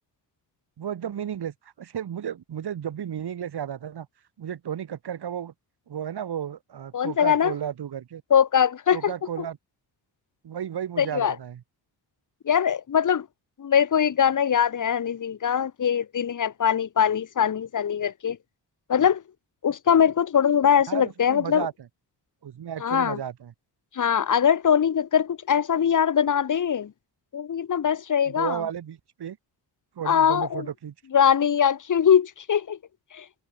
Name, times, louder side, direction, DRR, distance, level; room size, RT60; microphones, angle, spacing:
voice 1, 0.8-4.1 4.4-5.5 5.9-8.2 8.9-9.6 10.4-11.6 20.9-21.7 22.4-23.5 28.3-29.4 30.0-31.2, right 9 dB, 60° right, 2.7 m, -33 dB
voice 2, 6.9-7.5 8.3-9.4 11.0-11.3 12.4-13.3 13.6-18.4 18.9-19.2 19.6-21.7 22.8-23.2 23.9-26.9 27.3-28.6 30.0-30.7 31.1-32.8 33.1-33.2, left 8 dB, 45° left, 1.4 m, -22 dB
cardioid pair, 105°, 43 cm